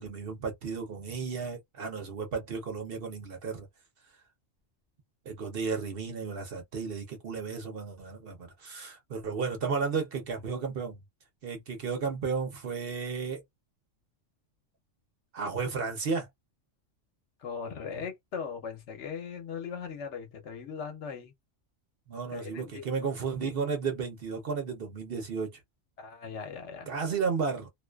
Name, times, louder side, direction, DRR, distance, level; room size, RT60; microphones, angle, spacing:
voice 1, 0.0-3.7 5.3-11.0 11.4-13.4 15.3-16.3 22.1-25.5 26.9-27.7, right 5 dB, 55° right, 0.8 m, -33 dB
voice 2, 17.4-21.3 22.3-22.9 26.0-26.9, left 6 dB, 70° left, 1.0 m, -39 dB
2.5 x 2.3 x 2.2 m
omnidirectional pair, 1.3 m